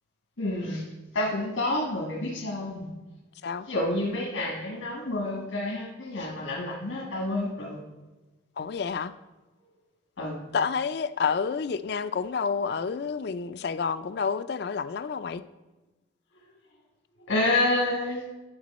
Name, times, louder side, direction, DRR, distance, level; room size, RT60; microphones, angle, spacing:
voice 1, 0.4-0.8 1.1-2.9 3.7-7.8 10.2-10.5 17.3-18.3, left 2 dB, 90° left, 1.4 m, -28 dB
voice 2, 8.6-9.1 10.5-15.4, left 5 dB, 55° left, 0.4 m, -29 dB
10.5 x 6.9 x 4.1 m
head